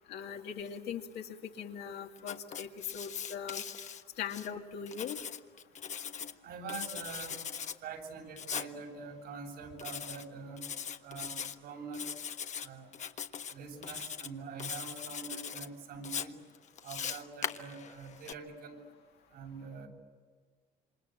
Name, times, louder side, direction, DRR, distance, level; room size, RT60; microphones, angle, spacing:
voice 1, 0.1-1.3 1.6-2.7 2.9-3.6 4.2-5.2, left 7 dB, 75° left, 2 dB, 2.9 m, -40 dB
Writing, 2.2-4.5 4.9-6.3 6.7-7.8 8.4-8.7 9.8-10.3 10.6-11.5 11.9-12.7 12.9-13.5 13.8-14.3 14.6-15.7 16.0-18.3, left 7 dB, 45° left, 1.4 m, -40 dB
voice 2, 6.4-7.4 7.8-10.6 11.0-12.1 12.6-12.9 13.5-16.4 16.8-18.8 19.3-19.9, right 5 dB, 75° right, 1 dB, 7.3 m, -44 dB
28.0 x 26.5 x 7.9 m, 1.5 s
cardioid pair, 110°, 17 cm